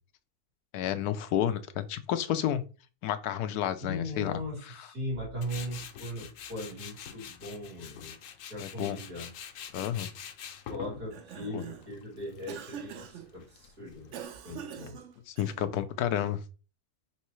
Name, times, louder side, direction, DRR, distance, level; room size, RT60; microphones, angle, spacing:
voice 1, 0.7-2.6 3.0-4.9 8.6-9.0 9.7-10.1 11.5-11.6 15.3-16.4, left 10 dB, 90° left, 10 dB, 1.1 m, -31 dB
voice 2, 3.8-8.1 8.5-9.3 10.7-14.2 14.4-15.0 15.5-15.7, left 1 dB, 85° right, -6 dB, 3.5 m, -39 dB
Tools, 5.4-14.2, left 8 dB, 65° left, 0.9 m, -46 dB
Cough, 10.9-11.9 12.5-13.3 14.1-15.8, right 9 dB, 65° right, 0.8 m, -44 dB
5.6 x 3.1 x 3.1 m, 0.34 s
omnidirectional pair, 1.6 m